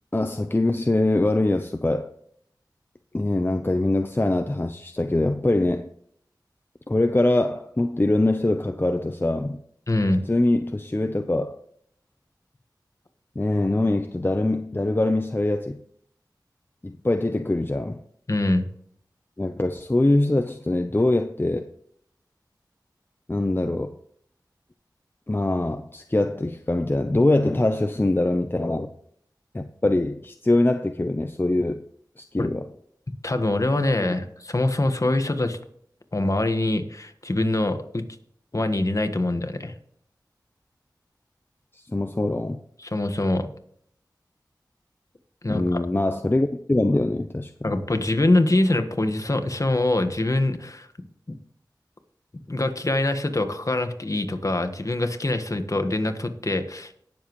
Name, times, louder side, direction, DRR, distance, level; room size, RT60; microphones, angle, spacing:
voice 1, 0.1-2.1 3.1-5.9 6.9-9.6 10.3-11.6 13.4-15.8 16.8-18.0 19.4-21.7 23.3-24.0 25.3-28.9 29.5-31.8 32.2-32.6 41.7-42.6 45.5-47.5, left 2 dB, 30° left, 0.7 m, -23 dB
voice 2, 9.9-10.2 18.3-18.6 32.4-32.5 33.2-35.6 36.1-38.0 38.5-39.7 42.8-43.5 45.4-45.8 47.6-50.9 51.3-51.4 52.5-56.9, left 2 dB, 45° left, 1.4 m, -24 dB
18.5 x 7.3 x 3.1 m
wide cardioid pair, 40°, 8 cm